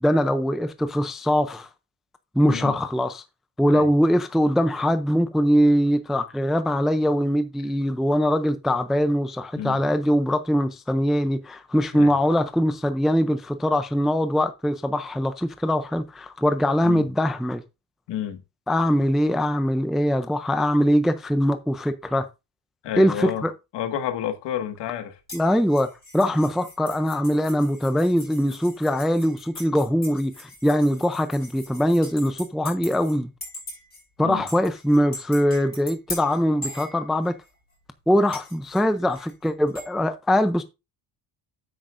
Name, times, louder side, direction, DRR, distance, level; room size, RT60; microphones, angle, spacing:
voice 1, 0.0-1.7 2.4-3.2 3.6-17.6 18.7-22.3 23.0-23.5 25.3-33.3 34.2-37.3 38.1-40.6, equal, ahead, 0.4 m, -22 dB
voice 2, 2.4-2.7 3.7-3.9 9.6-9.8 11.9-12.1 16.8-17.1 18.1-18.4 22.8-23.4 23.7-25.2 34.2-34.5, left 9 dB, 65° left, 1.7 m, -30 dB
sound 1, 25.3-33.2 33.4-34.0 34.5-37.5 38.3-39.9, left 1 dB, 20° left, 6.4 m, -41 dB
9.8 x 8.4 x 2.5 m
cardioid pair, 150°, 45 cm